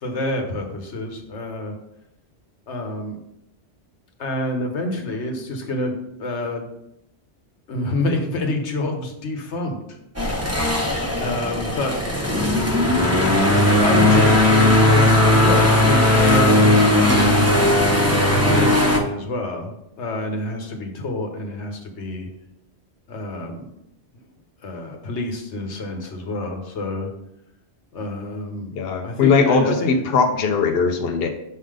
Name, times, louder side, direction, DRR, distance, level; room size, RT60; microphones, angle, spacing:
voice 1, 0.0-1.8 2.7-3.2 4.2-5.9 6.2-6.7 7.7-9.8 11.1-12.0 13.8-17.5 18.3-22.3 23.1-23.6 24.6-27.1 27.9-28.7 29.0-30.0, left 1 dB, 85° left, 4 dB, 1.3 m, -27 dB
sound 1, 10.2-19.0, left 1 dB, 15° right, 0.8 m, -17 dB
voice 2, 28.8-31.3, left 5 dB, 65° left, 5 dB, 0.8 m, -19 dB
6.4 x 3.7 x 4.9 m, 0.81 s
omnidirectional pair, 1.1 m